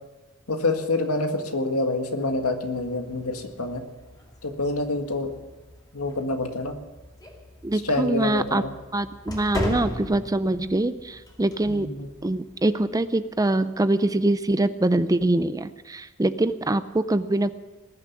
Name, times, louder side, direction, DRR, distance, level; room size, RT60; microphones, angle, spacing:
voice 1, 0.5-3.8 4.4-5.3 5.9-6.7 7.8-8.7 11.7-12.1, left 2 dB, 85° left, 5 dB, 1.8 m, -27 dB
sound 1, 2.2-13.1, left 1 dB, 20° left, 2.6 m, -39 dB
voice 2, 7.6-8.6 8.9-11.9 12.2-17.5, right 2 dB, 15° right, 13 dB, 0.5 m, -24 dB
20.0 x 7.2 x 9.4 m, 1.2 s
head